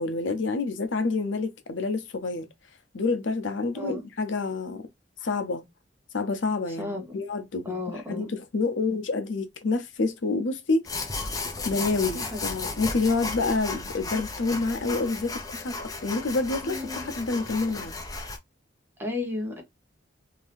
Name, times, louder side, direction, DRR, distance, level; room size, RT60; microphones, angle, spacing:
voice 1, 0.0-2.5 2.9-4.8 5.2-5.6 6.1-10.8 11.6-17.9, left 3 dB, 85° left, 0.7 m, -28 dB
voice 2, 6.8-7.2 7.6-8.3 12.1-12.7 16.6-17.1 19.0-19.6, left 2 dB, 10° right, 1.0 m, -34 dB
sound 1, 10.8-18.4, left 3 dB, 20° left, 0.6 m, -34 dB
2.8 x 2.7 x 3.3 m
head